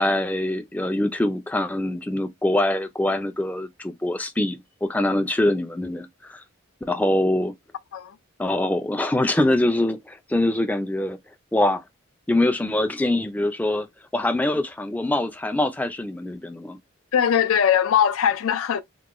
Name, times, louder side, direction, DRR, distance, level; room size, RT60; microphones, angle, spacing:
voice 1, 0.0-6.4 6.8-7.5 8.4-11.2 11.5-11.8 12.3-13.9 14.1-16.8, left 1 dB, 5° left, 0.3 m, -24 dB
voice 2, 17.1-18.8, left 8 dB, 85° left, 0.4 m, -20 dB
3.0 x 2.1 x 3.5 m
head